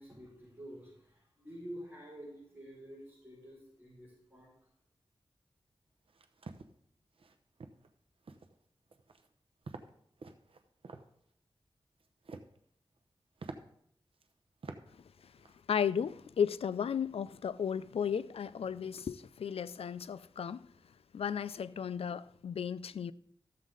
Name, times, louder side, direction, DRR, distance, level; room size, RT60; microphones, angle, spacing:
voice 1, 0.0-4.5, equal, 15° right, 5.2 m, -49 dB
sound 1, 6.1-6.7 7.2-7.3 7.6-7.9 8.2-8.5 8.9-9.3 9.7-9.9 10.2-11.0 12.0-12.6 13.0-13.1 13.4-13.6 14.2-14.3 14.6-14.8 15.2-15.5, right 4 dB, 70° right, 0.8 m, -47 dB
voice 2, 15.7-20.7 21.1-23.1, left 7 dB, 90° left, 0.4 m, -34 dB
13.5 x 7.3 x 3.9 m
wide cardioid pair, 80°, 10 cm